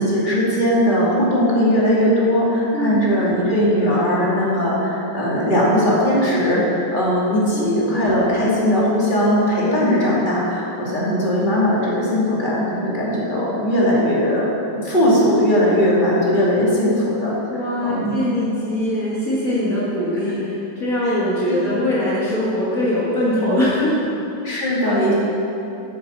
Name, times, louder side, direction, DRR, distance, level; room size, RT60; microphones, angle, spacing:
voice 1, 0.0-17.3 17.8-18.4 21.0-21.2 21.5-21.6 24.4-25.1, equal, 25° left, -7 dB, 2.7 m, -19 dB
voice 2, 2.7-3.2 7.5-8.1 17.5-24.1, left 1 dB, 45° left, -9 dB, 2.2 m, -22 dB
9.7 x 7.6 x 7.3 m, 2.9 s
omnidirectional pair, 2.1 m